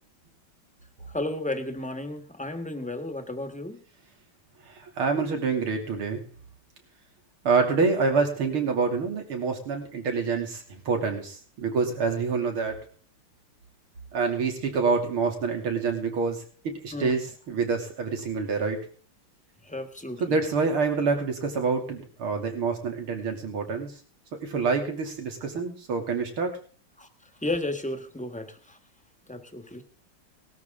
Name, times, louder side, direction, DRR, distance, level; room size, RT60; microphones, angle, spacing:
voice 1, 1.0-3.8 16.9-17.1 19.6-20.2 27.0-27.1 27.4-28.8 29.3-29.8, left 2 dB, 5° left, 7 dB, 1.3 m, -33 dB
voice 2, 4.7-6.2 7.5-12.8 14.1-18.8 20.2-23.9 24.4-26.5, right 4 dB, 85° right, 3 dB, 3.6 m, -27 dB
19.5 x 13.0 x 3.8 m, 0.41 s
omnidirectional pair, 2.3 m